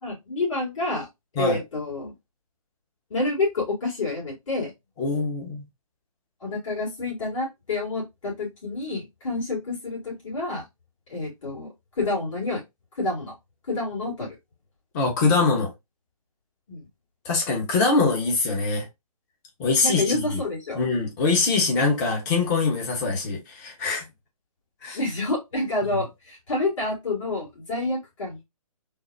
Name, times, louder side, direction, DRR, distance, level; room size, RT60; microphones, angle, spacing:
voice 1, 0.0-1.1 1.4-2.1 3.1-4.7 6.4-10.6 11.1-12.6 13.0-13.3 13.7-14.3 16.7-16.9 19.8-20.8 24.9-28.4, left 2 dB, 55° left, 2.2 m, -28 dB
voice 2, 5.0-5.6 14.9-15.7 17.2-18.9 19.6-20.4 20.7-24.0 24.8-25.0 25.8-26.0, left 3 dB, 30° left, 1.0 m, -23 dB
3.8 x 2.1 x 2.6 m
figure-of-eight pair, 140°, 19 cm